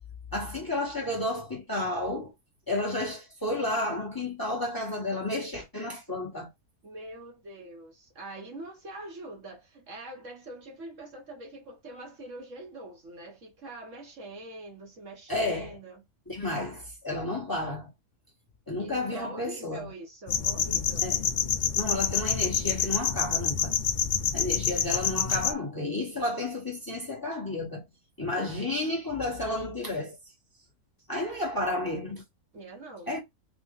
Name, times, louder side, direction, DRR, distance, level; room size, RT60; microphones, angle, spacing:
voice 1, 0.3-2.3 2.7-6.5 15.3-15.7 16.3-17.9 18.7-19.9 21.0-21.2 21.7-23.7 24.3-27.8 28.2-30.2 31.1-32.2 33.1-33.2, left 2 dB, 15° left, 1.2 m, -31 dB
voice 2, 6.8-16.0 18.8-21.1 32.5-33.1, right 2 dB, 60° right, 1.4 m, -44 dB
sound 1, 20.3-25.5, left 7 dB, 65° left, 0.4 m, -27 dB
3.7 x 2.5 x 3.8 m
omnidirectional pair, 1.5 m